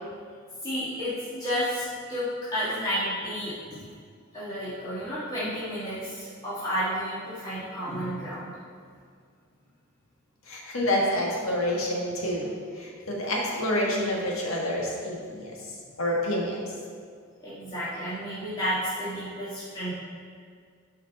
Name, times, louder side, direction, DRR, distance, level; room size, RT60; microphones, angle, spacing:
voice 1, 0.6-3.8 4.3-8.5 17.4-20.0, equal, 20° left, -12 dB, 1.6 m, -31 dB
voice 2, 10.5-15.5 16.0-16.7, left 1 dB, 85° left, -2 dB, 1.7 m, -28 dB
10.5 x 4.8 x 4.1 m, 2.1 s
head